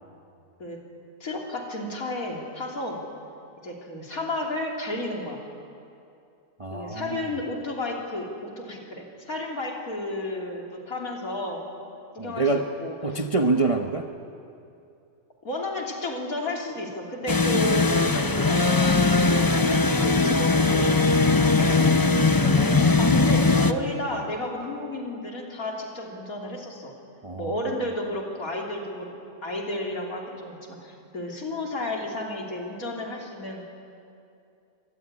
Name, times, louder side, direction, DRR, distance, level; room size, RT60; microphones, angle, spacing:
voice 1, 1.2-3.0 3.6-5.4 6.7-11.7 12.2-12.5 12.8-13.2 15.4-21.0 21.6-21.9 23.0-26.9 27.4-29.2 29.4-33.6, left 1 dB, 50° left, 0 dB, 3.7 m, -32 dB
voice 2, 6.6-7.3 12.2-12.7 13.0-14.1 22.4-23.2 27.2-27.7, right 3 dB, 25° right, 3 dB, 0.9 m, -27 dB
sound 1, 17.3-23.7, left 3 dB, 35° left, 0.3 m, -20 dB
26.0 x 18.5 x 9.7 m, 2.6 s
omnidirectional pair, 1.8 m